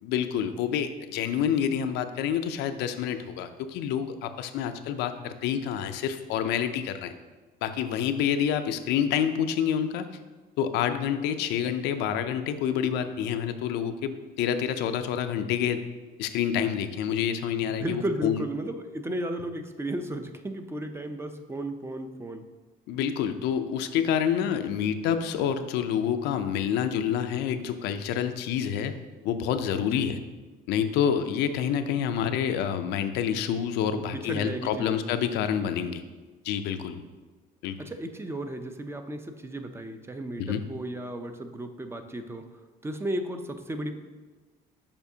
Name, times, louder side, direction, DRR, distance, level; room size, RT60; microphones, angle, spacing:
voice 1, 0.0-7.1 7.6-10.1 10.6-15.8 16.2-18.4 22.9-28.9 29.2-30.2 30.7-36.0 36.4-37.0 37.6-37.8 40.4-40.6, left 8 dB, 90° left, 9 dB, 0.4 m, -28 dB
voice 2, 17.7-22.5 29.9-30.2 34.0-35.0 37.8-42.4 42.8-43.9, right 1 dB, 15° right, 7 dB, 0.5 m, -34 dB
6.9 x 5.2 x 2.7 m, 1.3 s
cardioid pair, 110°, 17 cm